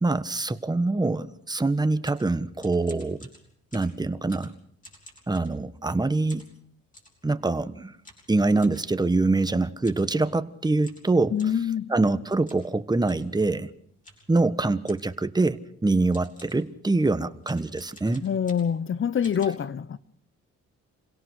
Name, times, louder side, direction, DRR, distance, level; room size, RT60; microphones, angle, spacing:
voice 1, 0.0-3.3 3.7-4.5 5.3-6.4 7.2-7.9 8.3-11.4 11.9-13.7 14.3-18.3, right 2 dB, 15° right, 1.3 m, -24 dB
sound 1, 1.8-5.9 6.3-7.2 8.0-8.8 9.8-10.1 10.4-10.5 10.8-11.7 12.5-12.7 13.0-13.3 14.0-14.4 14.9-15.2 15.8-15.9 16.1-16.7 17.4-18.9 19.2-19.5, left 1 dB, 25° left, 7.8 m, -51 dB
voice 2, 11.3-11.9 18.2-20.0, left 8 dB, 40° left, 1.0 m, -25 dB
28.0 x 17.5 x 6.4 m
cardioid pair, 90°, 30 cm